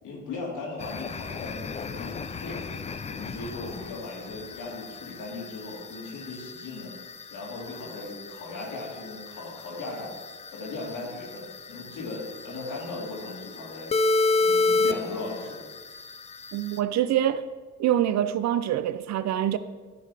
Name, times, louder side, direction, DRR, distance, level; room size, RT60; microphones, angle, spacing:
voice 1, 0.0-2.7 3.1-6.9 7.3-10.1 10.5-14.0 14.4-15.6, left 3 dB, 85° left, 2.5 m, -37 dB
sound 1, 0.8-16.8, left 3 dB, 20° left, 0.3 m, -31 dB
voice 2, 16.5-17.4 17.8-19.6, right 11 dB, 65° right, 0.5 m, -25 dB
11.0 x 3.9 x 4.9 m
cardioid pair, 90°, 30 cm